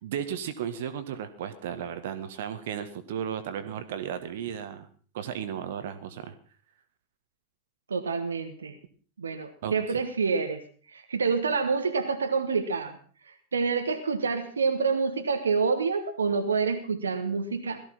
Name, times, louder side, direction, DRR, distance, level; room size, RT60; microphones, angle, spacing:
voice 1, 0.0-4.9 5.1-6.3 9.6-10.0, right 9 dB, 55° right, 10 dB, 1.5 m, -35 dB
voice 2, 7.9-8.8 9.2-10.6 10.9-13.0 13.3-17.8, right 5 dB, 70° right, 6 dB, 1.3 m, -27 dB
17.5 x 14.0 x 4.4 m, 0.43 s
figure-of-eight pair, 90°, 0 cm